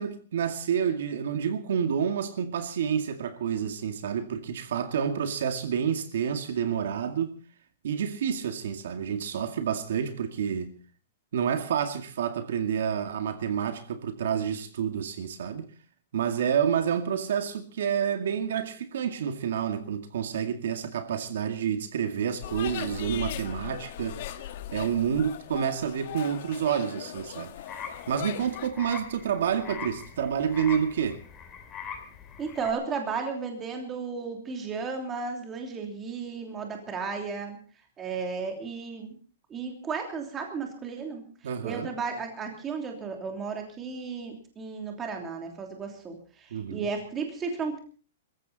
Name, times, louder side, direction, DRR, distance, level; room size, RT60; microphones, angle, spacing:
voice 1, 0.0-7.4 7.8-10.7 11.3-15.7 16.1-24.2 24.7-27.5 28.1-31.2 41.4-41.9 46.5-46.9, right 8 dB, 65° right, 2.2 m, -29 dB
sound 1, 22.4-28.7, left 11 dB, 45° left, 1.4 m, -38 dB
sound 2, 27.7-32.7, left 6 dB, 15° left, 2.8 m, -42 dB
voice 2, 32.4-37.6 38.0-39.1 39.5-47.8, right 5 dB, 15° right, 3.0 m, -34 dB
24.0 x 14.5 x 4.1 m
supercardioid pair, 175°, 0 cm